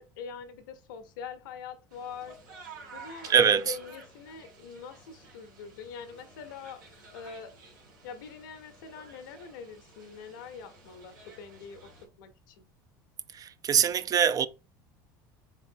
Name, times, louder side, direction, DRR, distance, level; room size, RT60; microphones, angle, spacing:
voice 1, 0.0-6.8 7.1-7.5 8.0-11.9 12.2-12.6, left 6 dB, 80° left, 0.8 m, -44 dB
washington caboutsidenathist, 1.9-12.0, right 4 dB, 85° right, 1.6 m, -52 dB
voice 2, 3.3-3.7 13.4-14.5, right 8 dB, 35° right, 0.4 m, -23 dB
3.7 x 3.6 x 2.7 m
hypercardioid pair, 85°, 11 cm